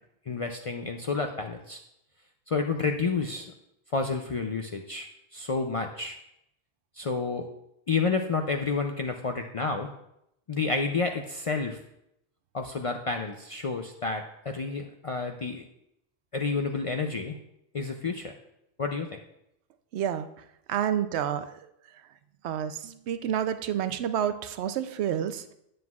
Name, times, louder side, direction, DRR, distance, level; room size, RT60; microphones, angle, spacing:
voice 1, 0.3-1.8 2.5-3.5 3.9-6.2 7.0-7.5 7.9-9.9 10.5-11.8 12.5-15.6 16.3-17.4 17.7-18.3 18.8-19.2, left 4 dB, 50° left, 4 dB, 0.4 m, -30 dB
voice 2, 19.9-20.3 20.7-21.5 22.4-25.5, right 9 dB, 80° right, 10 dB, 0.8 m, -29 dB
9.3 x 7.7 x 2.3 m, 0.79 s
omnidirectional pair, 1.1 m